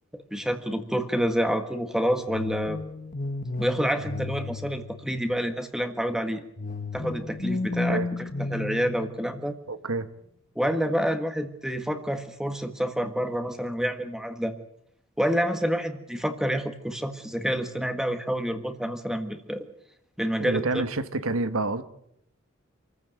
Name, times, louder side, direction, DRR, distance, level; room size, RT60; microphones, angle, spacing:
voice 1, 0.1-2.8 3.6-6.4 6.9-9.5 10.5-14.5 15.2-19.6 20.2-20.6, equal, 5° right, 1.6 m, -28 dB
sound 1, 2.3-5.4 6.6-9.5, left 3 dB, 40° left, 1.2 m, -33 dB
voice 2, 9.7-10.1 20.4-21.8, right 2 dB, 85° right, 1.5 m, -28 dB
27.5 x 15.0 x 8.9 m
head